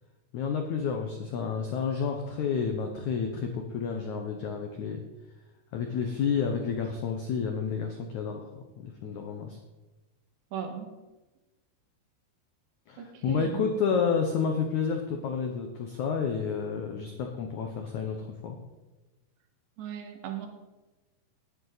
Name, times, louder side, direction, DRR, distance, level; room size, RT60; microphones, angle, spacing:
voice 1, 0.3-5.0 5.7-9.6 12.9-18.6, left 6 dB, 85° left, 4 dB, 1.6 m, -30 dB
voice 2, 10.5-10.9 13.0-13.7 19.8-20.5, right 9 dB, 80° right, 4 dB, 3.7 m, -37 dB
19.0 x 9.9 x 4.0 m, 1.1 s
omnidirectional pair, 5.0 m